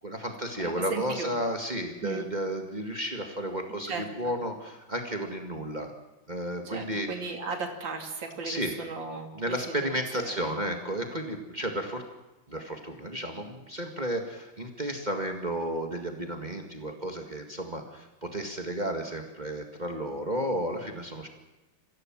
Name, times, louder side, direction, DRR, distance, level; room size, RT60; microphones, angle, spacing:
voice 1, 0.0-3.9 4.2-5.9 6.3-7.1 8.4-8.7 9.3-12.0 12.5-21.3, right 1 dB, 25° right, 4 dB, 2.0 m, -33 dB
voice 2, 0.6-1.3 2.0-2.3 3.8-4.3 6.6-10.5, right 4 dB, 75° right, 3 dB, 3.3 m, -36 dB
24.0 x 15.5 x 7.6 m, 1.0 s
omnidirectional pair, 2.1 m